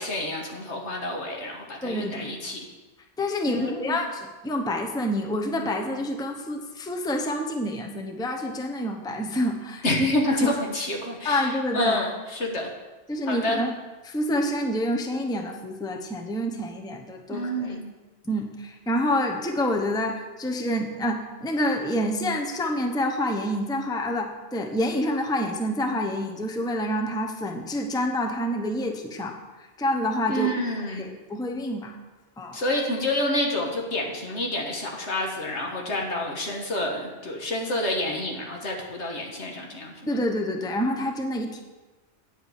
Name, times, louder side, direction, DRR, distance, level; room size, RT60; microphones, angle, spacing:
voice 1, 0.0-2.6 3.5-4.0 9.8-11.5 11.7-12.7 13.3-13.6 17.3-17.9 30.3-31.1 32.5-40.1, left 1 dB, 75° left, 1 dB, 1.8 m, -28 dB
voice 2, 1.8-2.3 3.2-9.8 10.4-10.5 11.2-12.0 13.1-13.7 14.0-17.8 18.3-30.5 30.9-31.9 32.4-32.6 40.1-41.6, left 1 dB, 5° left, 3 dB, 0.7 m, -28 dB
8.9 x 7.9 x 5.0 m, 1.2 s
omnidirectional pair, 1.2 m